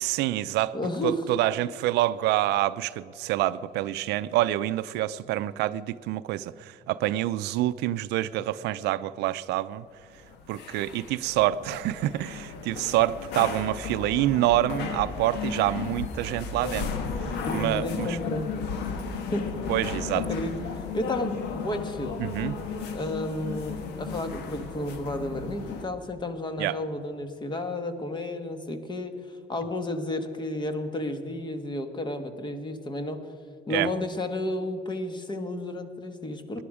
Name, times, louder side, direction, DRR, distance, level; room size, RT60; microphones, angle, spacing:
voice 1, 0.0-0.7 1.0-9.9 10.5-16.9 17.5-18.2 19.7-20.2 22.2-22.5 26.6-26.8 33.7-33.9, right 15 dB, 85° right, 0.5 m, -27 dB
voice 2, 0.7-1.2 17.4-18.5 19.3-19.5 20.1-20.5 20.9-22.2 22.9-33.2 33.7-36.6, left 1 dB, 25° left, 1.4 m, -32 dB
sound 1, 10.0-25.9, left 5 dB, 90° left, 1.4 m, -34 dB
18.0 x 11.0 x 4.9 m
cardioid pair, 110°, 17 cm